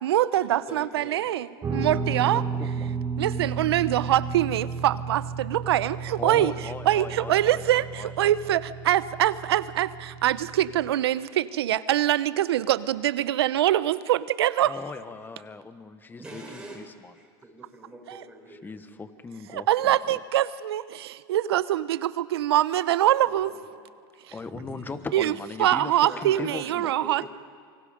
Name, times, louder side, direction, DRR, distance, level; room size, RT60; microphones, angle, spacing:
voice 1, 0.0-2.4 3.2-6.5 6.9-14.7 18.1-18.2 19.5-23.5 25.1-25.3 25.6-27.3, right 13 dB, 85° right, 16 dB, 0.8 m, -24 dB
voice 2, 0.7-1.3 16.2-19.0 23.2-23.6 24.4-25.0 26.0-27.3, right 2 dB, 5° right, -1 dB, 6.3 m, -44 dB
Guitar, 1.6-10.9, right 5 dB, 25° right, 4.4 m, -33 dB
voice 3, 2.3-3.0 6.2-8.5 14.6-17.1 18.5-20.2 24.3-27.3, left 4 dB, 15° left, 11 dB, 1.4 m, -39 dB
27.5 x 24.5 x 5.2 m, 2.2 s
supercardioid pair, 115°, 13 cm